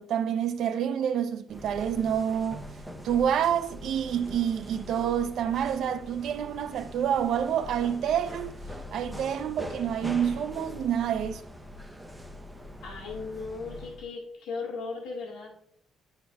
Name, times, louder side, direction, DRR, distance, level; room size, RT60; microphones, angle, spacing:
voice 1, 0.0-2.6 3.0-8.5 8.9-11.4, right 9 dB, 60° right, 0.6 m, -28 dB
sound 1, 1.5-14.1, left 1 dB, ahead, 0.7 m, -42 dB
voice 2, 12.8-15.5, left 4 dB, 90° left, 1.8 m, -37 dB
11.5 x 4.5 x 2.3 m
cardioid pair, 155°, 0 cm